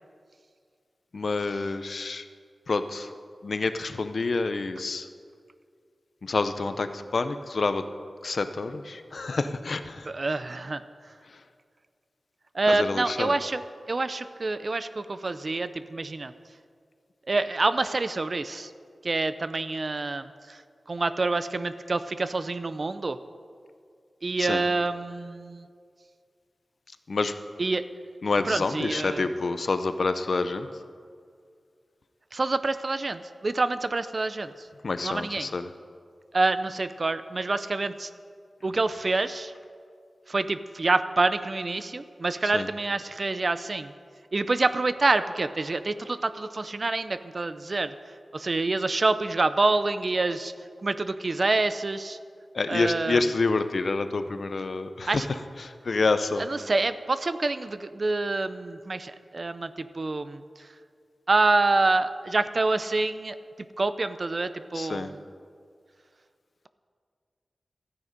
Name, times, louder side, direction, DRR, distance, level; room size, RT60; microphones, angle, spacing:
voice 1, 1.1-2.3 2.7-3.1 3.4-5.1 6.2-7.8 8.2-10.1 11.3-11.4 12.7-13.4 24.4-24.6 27.1-27.3 28.2-30.7 34.8-35.7 42.5-42.7 52.5-55.3 55.6-56.5 64.7-65.1, left 3 dB, 60° left, 10 dB, 0.6 m, -28 dB
voice 2, 10.1-10.8 12.5-13.6 13.9-16.3 17.3-18.7 19.0-20.6 20.9-23.2 24.2-25.7 27.6-27.8 28.5-29.3 32.3-34.7 35.0-35.5 36.3-38.1 38.6-39.5 40.3-43.9 44.3-47.9 48.3-50.5 50.8-52.2 52.7-53.2 55.1-55.3 56.5-60.7 61.3-63.4 63.8-65.2, right 3 dB, 45° right, 12 dB, 0.5 m, -27 dB
13.5 x 9.6 x 5.2 m, 2.2 s
wide cardioid pair, 105°, 0 cm